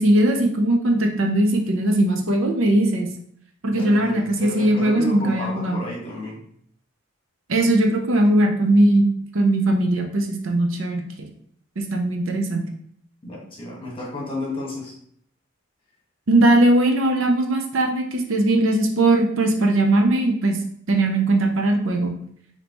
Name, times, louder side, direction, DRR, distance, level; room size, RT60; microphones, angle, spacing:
voice 1, 0.0-3.1 3.6-5.8 7.5-9.1 9.3-11.0 11.8-12.7 16.3-20.6 20.9-22.1, right 1 dB, 75° right, 3 dB, 0.7 m, -19 dB
voice 2, 3.7-6.4 13.2-14.9, left 1 dB, 25° left, -4 dB, 1.4 m, -32 dB
5.1 x 2.8 x 3.0 m, 0.64 s
head